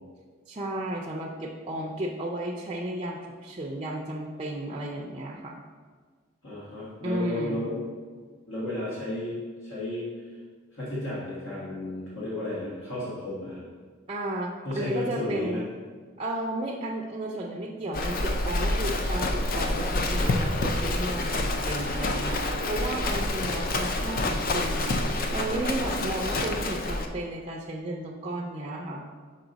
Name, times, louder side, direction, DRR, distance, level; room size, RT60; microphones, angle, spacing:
voice 1, 0.5-5.5 7.0-7.7 14.1-15.7 16.2-29.0, right 1 dB, 25° right, -2 dB, 0.5 m, -33 dB
voice 2, 6.4-7.8 8.5-10.1 10.7-13.6 14.6-15.6, left 1 dB, 70° left, -9 dB, 1.5 m, -33 dB
Livestock farm animals working animals, 17.9-27.1, left 2 dB, 45° left, 0.4 m, -28 dB
5.9 x 4.3 x 3.9 m, 1.5 s
head